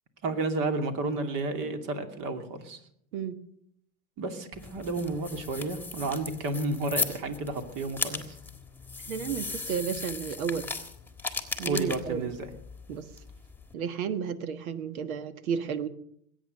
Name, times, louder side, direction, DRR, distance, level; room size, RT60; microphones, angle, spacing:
voice 1, 0.2-2.8 4.2-8.4 11.6-12.5, right 2 dB, 50° right, 7 dB, 2.7 m, -31 dB
sound 1, 4.5-13.7, left 3 dB, 5° left, 1.7 m, -37 dB
voice 2, 9.1-10.7 11.6-12.3 12.9-13.0 13.7-15.9, right 7 dB, 80° right, 12 dB, 1.5 m, -32 dB
21.0 x 9.1 x 6.5 m, 0.68 s
hypercardioid pair, 100°, 42 cm